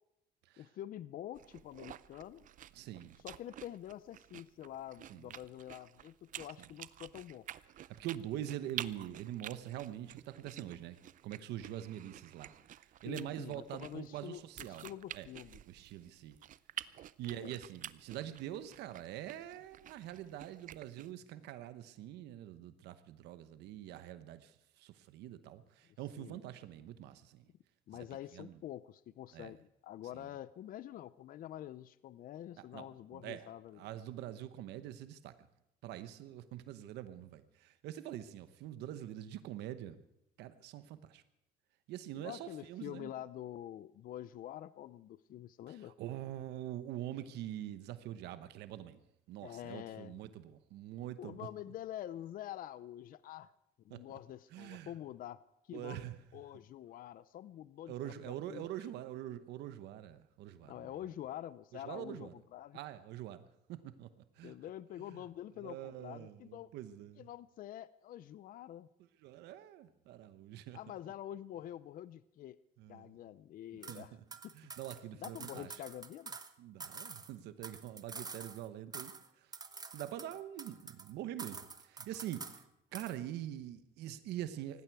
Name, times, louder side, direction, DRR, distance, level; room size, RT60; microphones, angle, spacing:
voice 1, 0.6-2.5 3.2-7.5 13.1-14.4 14.7-15.6 17.2-17.5 26.2-26.4 27.9-33.8 42.2-45.9 49.4-50.2 51.2-53.5 53.8-55.4 55.7-56.0 56.3-58.7 60.6-62.8 64.4-66.7 67.2-68.9 70.7-72.6 72.9-74.1 74.4-74.7 75.2-76.4, left 12 dB, 55° left, 17 dB, 0.5 m, -47 dB
sound 1, 1.3-21.1, right 11 dB, 50° right, 0.5 m, -50 dB
voice 2, 2.7-3.2 5.1-5.3 7.8-11.0 11.2-14.9 15.1-15.3 15.7-16.4 17.2-27.4 27.9-28.0 28.3-28.6 29.3-29.5 30.1-30.3 32.7-32.9 33.1-33.5 33.7-35.4 35.8-40.0 40.4-41.2 41.9-43.1 45.7-49.0 49.3-51.5 53.9-54.0 54.5-54.9 55.7-56.2 57.9-60.9 61.7-62.3 62.7-63.4 63.7-64.1 64.4-64.5 65.1-65.2 65.6-67.3 69.2-70.8 72.8-73.1 73.9-74.2 74.5-75.8 76.6-79.5 79.9-82.6 82.9-84.8, right 12 dB, 85° right, 12 dB, 1.0 m, -44 dB
sound 2, 73.8-74.0 74.3-76.5 76.8-78.7 78.9-79.3 79.5-81.1 81.4-82.6 82.9-83.2, right 4 dB, 25° right, 1.1 m, -47 dB
18.5 x 15.5 x 4.7 m, 0.84 s
cardioid pair, 110°, 17 cm